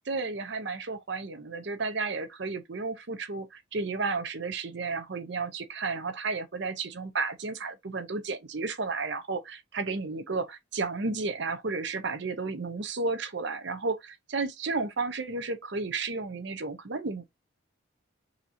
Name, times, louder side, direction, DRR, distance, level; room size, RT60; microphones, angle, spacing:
voice 1, 0.1-17.2, right 3 dB, 55° right, 0.7 m, -32 dB
5.8 x 2.8 x 2.5 m
head